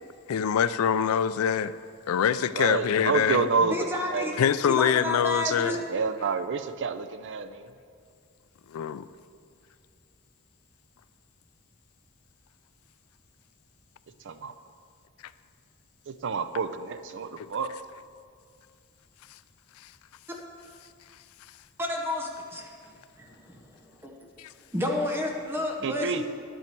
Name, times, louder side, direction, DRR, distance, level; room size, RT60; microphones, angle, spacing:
voice 1, 0.3-1.7 2.1-3.5 4.4-5.8 8.7-9.1 17.4-17.5 24.4-24.5, left 8 dB, 70° left, 0.3 m, -24 dB
voice 2, 2.5-4.4 5.4-7.7 14.2-14.5 16.1-17.7 25.8-26.2, right 5 dB, 55° right, 0.5 m, -29 dB
voice 3, 3.6-4.3 4.7-5.8 21.8-24.3 24.7-26.2, left 2 dB, 10° right, 0.9 m, -31 dB
10.0 x 9.0 x 4.5 m
head